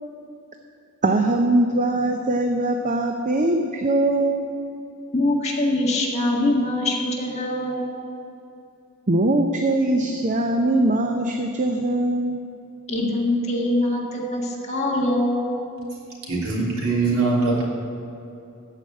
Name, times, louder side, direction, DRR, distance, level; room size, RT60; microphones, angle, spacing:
voice 1, 1.0-4.5 9.1-12.4, right 2 dB, 35° right, 4 dB, 0.6 m, -21 dB
voice 2, 5.1-7.8 12.9-15.5, left 1 dB, 30° left, -2 dB, 1.7 m, -23 dB
voice 3, 16.2-17.6, right 3 dB, 75° right, -5 dB, 3.2 m, -22 dB
14.0 x 5.1 x 8.5 m, 2.7 s
head